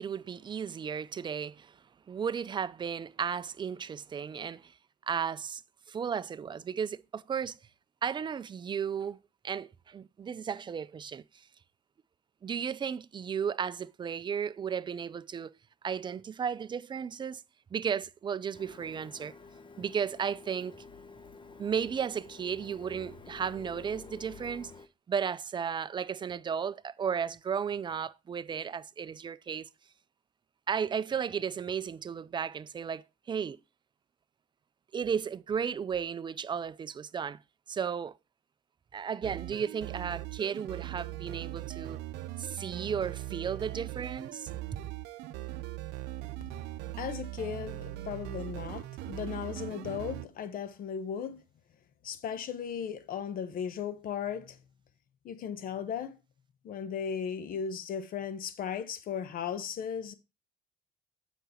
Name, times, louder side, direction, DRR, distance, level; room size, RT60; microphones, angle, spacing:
voice 1, 0.0-1.8 2.1-4.7 5.1-5.6 5.9-7.6 8.0-9.2 9.4-11.5 12.4-15.5 15.8-17.4 17.7-19.4 19.8-20.8 21.6-24.7 25.1-29.7 30.7-33.6 34.9-37.4 37.7-38.2 38.9-42.0 42.4-44.5, right 7 dB, 25° right, 0.4 m, -34 dB
Printer, 18.5-24.9, left 4 dB, 30° left, 0.9 m, -50 dB
sound 1, 39.2-50.3, right 15 dB, 90° right, 0.6 m, -40 dB
voice 2, 47.0-51.4 52.0-54.6 55.2-56.2 56.6-60.1, left 7 dB, 60° left, 1.0 m, -36 dB
7.9 x 5.2 x 4.3 m
cardioid pair, 110°, 17 cm